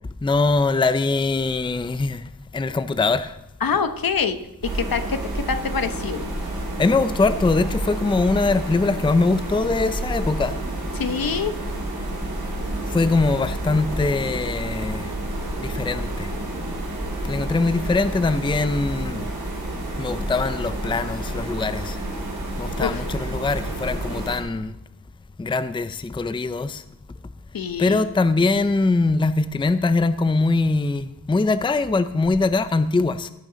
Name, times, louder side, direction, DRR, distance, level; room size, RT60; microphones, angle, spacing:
voice 1, 0.2-3.4 3.7-3.8 6.8-10.6 11.3-11.4 12.9-15.1 15.6-16.3 17.2-19.3 19.9-22.0 22.6-24.7 25.4-26.8 27.8-33.3, left 3 dB, 15° left, 0.5 m, -22 dB
voice 2, 3.6-4.4 4.7-6.3 10.9-11.5 22.8-23.1 27.5-28.0, left 6 dB, 75° left, 1.0 m, -25 dB
sound 1, 4.6-24.4, right 1 dB, 85° right, 4.0 m, -29 dB
17.0 x 6.6 x 5.1 m
wide cardioid pair, 110°, 35 cm